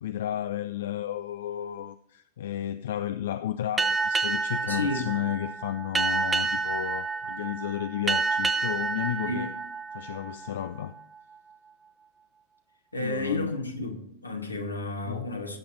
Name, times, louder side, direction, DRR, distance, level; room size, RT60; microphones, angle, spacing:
voice 1, 0.0-9.5 9.9-11.0 13.0-13.5 15.0-15.3, left 11 dB, 60° left, 0.4 m, -33 dB
Boat Water vehicle, 3.8-10.8, right 4 dB, 15° right, 0.9 m, -29 dB
voice 2, 4.6-5.1 9.2-9.5 12.9-15.6, left 2 dB, 80° left, 1.8 m, -31 dB
16.0 x 8.6 x 3.2 m
figure-of-eight pair, 90°, 0 cm